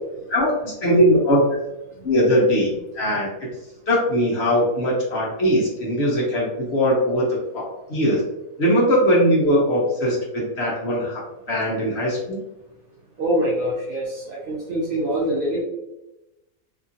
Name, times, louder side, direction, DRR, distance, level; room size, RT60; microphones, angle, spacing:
voice 1, 0.3-1.4 2.0-2.7 2.9-3.5 3.9-8.2 8.6-12.4, equal, 55° left, -4 dB, 0.9 m, -20 dB
voice 2, 13.2-15.6, equal, 65° right, -5 dB, 0.5 m, -24 dB
2.8 x 2.4 x 2.6 m, 0.97 s
omnidirectional pair, 1.6 m